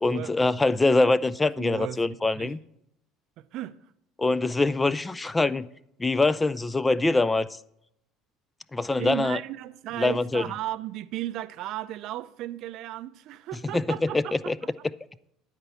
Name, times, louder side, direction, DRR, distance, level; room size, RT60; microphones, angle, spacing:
voice 1, 0.0-2.6 4.2-5.7 6.0-7.5 8.7-9.4 10.0-10.4 13.7-13.8 14.1-14.6, left 2 dB, 15° left, 0.3 m, -24 dB
voice 2, 1.6-2.0 2.4-2.5 3.4-3.7 9.0-14.5, right 14 dB, 60° right, 0.4 m, -35 dB
9.4 x 4.4 x 6.9 m
supercardioid pair, 80°, 0 cm